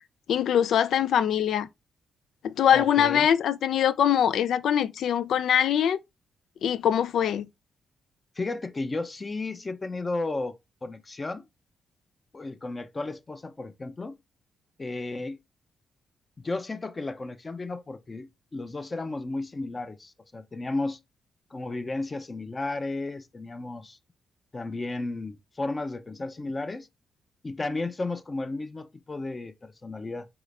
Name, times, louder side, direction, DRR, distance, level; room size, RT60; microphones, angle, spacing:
voice 1, 0.3-1.7 2.4-6.0 6.6-7.5, left 9 dB, 75° left, 0.4 m, -23 dB
voice 2, 2.7-3.3 8.4-10.5 10.8-11.5 12.3-14.2 14.8-15.4 16.4-21.0 21.5-24.0 24.5-26.9 27.4-30.3, left 2 dB, 30° left, 0.7 m, -33 dB
4.9 x 4.2 x 2.5 m
cardioid pair, 85°, 0 cm